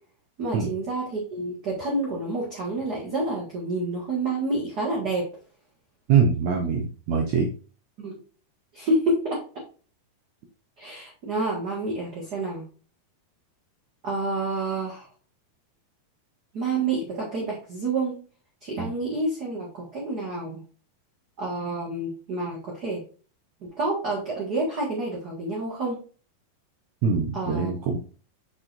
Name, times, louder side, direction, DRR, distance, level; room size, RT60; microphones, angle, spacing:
voice 1, 0.4-5.3 8.0-8.2 8.7-9.4 10.8-12.6 14.0-15.1 16.5-18.2 18.6-20.6 21.4-23.0 23.8-26.0 27.3-27.7, right 2 dB, 40° right, -4 dB, 1.5 m, -28 dB
voice 2, 6.1-7.5 18.8-18.9 27.0-28.0, right 6 dB, 75° right, 2 dB, 1.6 m, -23 dB
6.3 x 6.0 x 2.6 m, 0.38 s
omnidirectional pair, 4.1 m